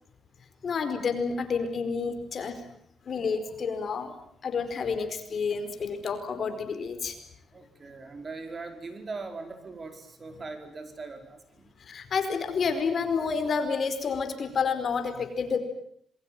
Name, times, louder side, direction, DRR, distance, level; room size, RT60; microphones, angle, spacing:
voice 1, 0.6-2.6 3.1-4.1 4.4-7.2 11.8-15.6, left 5 dB, 50° left, 8 dB, 4.7 m, -29 dB
voice 2, 7.5-11.7, right 3 dB, 35° right, 7 dB, 4.9 m, -40 dB
27.0 x 23.0 x 9.2 m, 0.67 s
cardioid pair, 105°, 0 cm